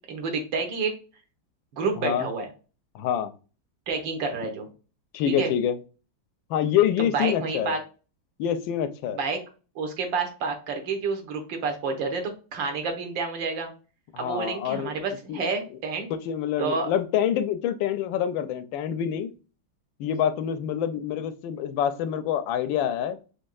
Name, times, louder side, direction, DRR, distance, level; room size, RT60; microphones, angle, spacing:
voice 1, 0.1-0.9 1.7-2.5 3.9-4.7 5.3-5.5 7.1-7.8 9.2-9.4 9.7-13.7 14.2-16.1 16.6-16.9, right 4 dB, 65° right, 4 dB, 1.8 m, -29 dB
voice 2, 2.9-3.3 5.1-5.8 6.5-7.8 8.4-9.2 14.1-15.5 16.3-19.3 20.0-23.2, left 9 dB, 75° left, 11 dB, 1.3 m, -26 dB
5.3 x 3.7 x 2.3 m, 0.35 s
omnidirectional pair, 2.2 m